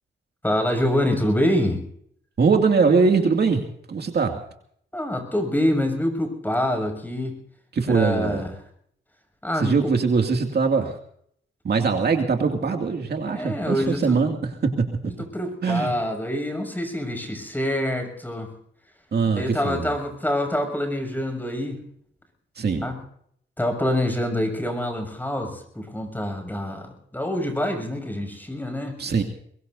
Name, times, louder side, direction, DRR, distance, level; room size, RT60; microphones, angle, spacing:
voice 1, 0.4-1.8 4.9-7.3 7.9-8.6 9.4-9.9 13.2-14.2 15.2-18.5 19.3-21.8 22.8-23.0 23.6-29.0, left 1 dB, 10° left, 5 dB, 6.8 m, -26 dB
voice 2, 2.4-3.6 3.9-4.4 7.7-8.4 9.6-11.0 11.6-14.9 15.6-15.9 19.1-19.9 22.6-22.9 29.0-29.2, right 5 dB, 55° right, 3 dB, 2.4 m, -21 dB
23.0 x 22.0 x 2.7 m, 0.66 s
cardioid pair, 95°, 20 cm